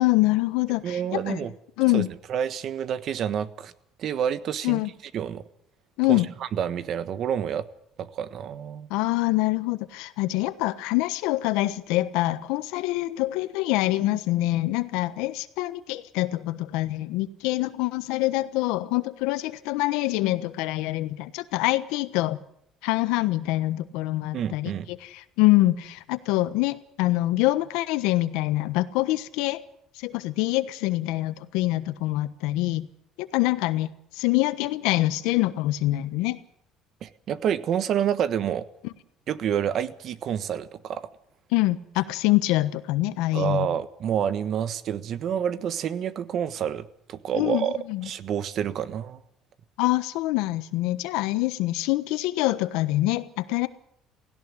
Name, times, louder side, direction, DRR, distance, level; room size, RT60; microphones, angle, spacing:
voice 1, 0.0-1.4 1.8-2.1 4.6-4.9 6.0-6.3 8.9-22.4 22.8-24.7 25.0-29.6 30.0-32.9 33.2-33.9 34.1-36.4 41.5-43.7 47.4-48.1 49.8-53.7, left 18 dB, 85° left, 14 dB, 1.2 m, -25 dB
voice 2, 0.8-1.5 1.9-3.7 4.0-4.8 5.1-5.4 6.1-6.2 6.5-7.6 8.0-8.9 24.3-24.9 37.0-38.6 39.3-41.1 43.3-47.8 48.0-49.2, right 9 dB, 55° right, 14 dB, 1.3 m, -28 dB
17.0 x 16.5 x 9.8 m, 0.72 s
cardioid pair, 110°, 0 cm